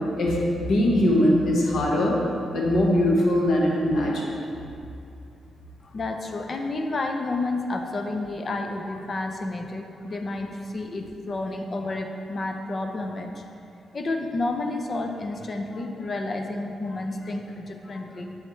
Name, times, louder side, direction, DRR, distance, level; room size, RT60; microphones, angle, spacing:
voice 1, 0.2-2.2 2.5-4.4, left 1 dB, 65° left, -2 dB, 1.4 m, -21 dB
voice 2, 5.8-13.6 13.9-18.4, left 2 dB, 35° left, 4 dB, 0.6 m, -30 dB
7.8 x 7.6 x 3.2 m, 2.5 s
cardioid pair, 130°, 0 cm